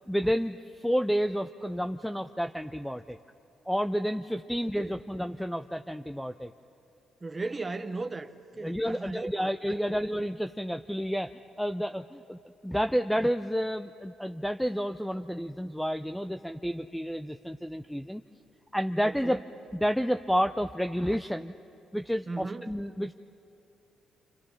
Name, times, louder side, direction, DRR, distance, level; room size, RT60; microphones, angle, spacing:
voice 1, 0.1-3.2 3.7-6.5 8.6-18.2 18.7-19.4 19.7-21.5 21.9-23.1, equal, ahead, 0.6 m, -30 dB
voice 2, 7.2-10.0 19.0-19.4 22.3-22.7, right 3 dB, 25° right, 0.9 m, -37 dB
27.5 x 27.0 x 5.7 m
cardioid pair, 90°, 0 cm